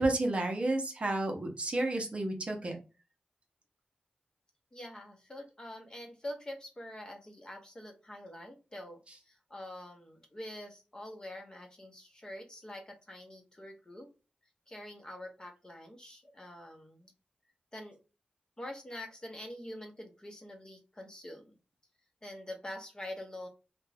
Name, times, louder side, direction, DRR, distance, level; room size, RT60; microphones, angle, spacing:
voice 1, 0.0-2.8, right 2 dB, 40° right, 2 dB, 0.7 m, -31 dB
voice 2, 4.7-14.1 14.7-17.1 17.7-18.0 18.6-21.6 22.2-23.5, left 1 dB, 25° left, 2 dB, 0.7 m, -45 dB
2.4 x 2.2 x 3.2 m, 0.31 s
wide cardioid pair, 80°, 3 cm